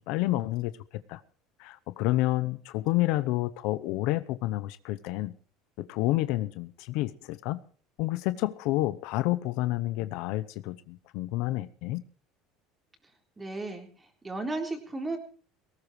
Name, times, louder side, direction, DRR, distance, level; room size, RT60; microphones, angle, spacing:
voice 1, 0.1-0.8 1.1-1.2 1.6-5.3 5.8-7.6 8.0-12.0, left 17 dB, 70° left, 14 dB, 0.8 m, -29 dB
voice 2, 13.4-15.2, right 2 dB, 15° right, 4 dB, 3.8 m, -35 dB
19.0 x 17.5 x 3.2 m, 0.41 s
supercardioid pair, 115°, 0 cm